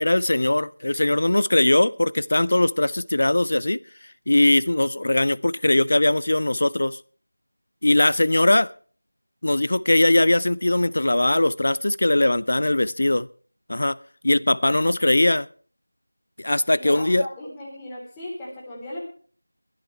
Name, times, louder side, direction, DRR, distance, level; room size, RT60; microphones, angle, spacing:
voice 1, 0.0-3.8 4.3-7.0 7.8-8.7 9.4-13.3 13.7-14.0 14.2-15.5 16.4-17.3, left 1 dB, 50° left, 0.6 m, -20 dB
voice 2, 16.8-19.0, left 1 dB, 5° left, 3.6 m, -36 dB
22.0 x 12.0 x 3.3 m
figure-of-eight pair, 170°, 0 cm